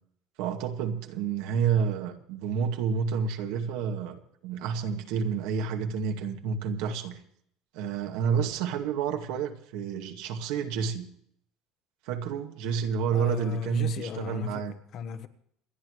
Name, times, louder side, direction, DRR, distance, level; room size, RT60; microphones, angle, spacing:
voice 1, 0.4-7.2 7.7-11.1 12.1-14.7, right 7 dB, 70° right, 2.2 m, -29 dB
voice 2, 13.1-15.3, left 8 dB, 40° left, 1.2 m, -36 dB
28.0 x 11.0 x 3.2 m
cardioid pair, 165°, 0 cm